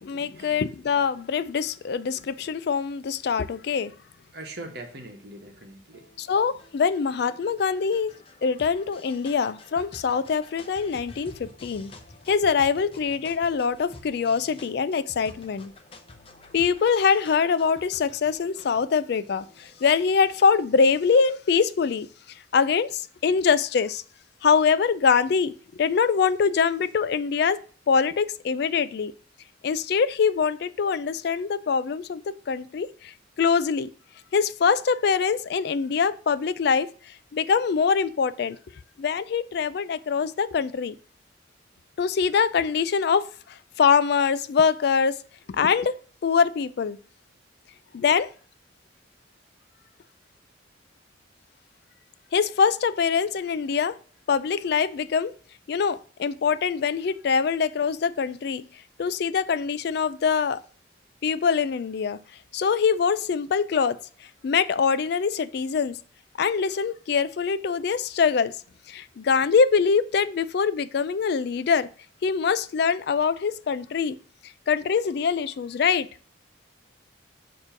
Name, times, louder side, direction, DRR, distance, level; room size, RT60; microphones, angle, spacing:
voice 1, 0.0-3.9 6.2-8.1 8.4-11.9 12.3-15.7 16.5-24.0 24.4-27.6 27.9-29.1 29.6-33.9 34.3-38.6 39.0-40.9 42.0-45.2 45.5-46.0 46.2-47.0 47.9-48.3 52.3-54.0 54.3-55.3 55.7-58.6 59.0-60.6 61.2-62.2 62.5-66.0 66.4-68.6 68.9-71.9 72.2-74.2 74.4-76.1, left 6 dB, 55° left, 0.3 m, -24 dB
voice 2, 4.3-6.3, right 2 dB, 55° right, 1.4 m, -42 dB
sound 1, 5.9-21.5, left 2 dB, 30° left, 0.7 m, -49 dB
6.7 x 3.0 x 5.7 m
head